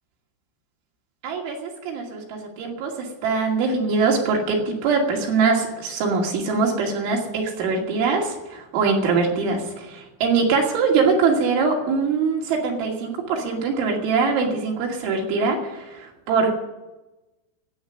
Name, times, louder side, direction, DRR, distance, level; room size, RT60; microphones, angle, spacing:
voice 1, 1.2-16.6, right 4 dB, 75° right, 0 dB, 4.8 m, -23 dB
13.5 x 8.8 x 9.8 m, 1.0 s
omnidirectional pair, 5.6 m